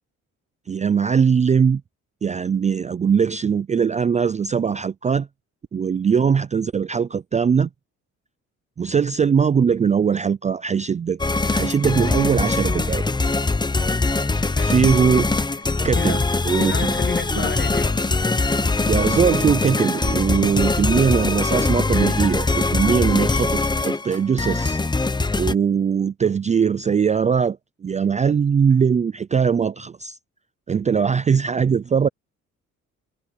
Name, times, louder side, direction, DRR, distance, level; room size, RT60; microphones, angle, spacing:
voice 1, 0.7-1.8 2.2-5.3 5.7-7.7 8.8-11.2 11.5-13.0 14.6-15.3 15.8-16.2 16.5-16.9 17.4-17.5 18.9-24.8 25.4-27.6 27.8-30.2 30.7-32.1, right 6 dB, 25° right, 0.4 m, -20 dB
sound 1, 11.2-25.5, left 3 dB, 15° left, 0.9 m, -22 dB
voice 2, 14.4-14.9 15.5-16.3 16.6-18.0 30.9-31.1, left 6 dB, 40° left, 1.7 m, -33 dB
cardioid pair, 90°, 30 cm